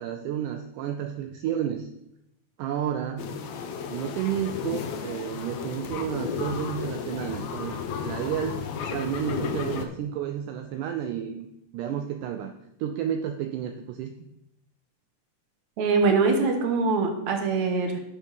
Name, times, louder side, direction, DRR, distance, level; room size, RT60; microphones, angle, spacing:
voice 1, 0.0-1.9 2.6-3.3 3.9-7.8 8.0-8.6 8.9-11.5 11.7-12.5 12.8-14.1, right 9 dB, 80° right, 6 dB, 1.9 m, -31 dB
sound 1, 3.2-9.9, left 6 dB, 80° left, 1.6 m, -33 dB
voice 2, 15.8-18.0, right 4 dB, 65° right, 3 dB, 2.1 m, -23 dB
9.8 x 3.6 x 6.3 m, 0.81 s
omnidirectional pair, 4.1 m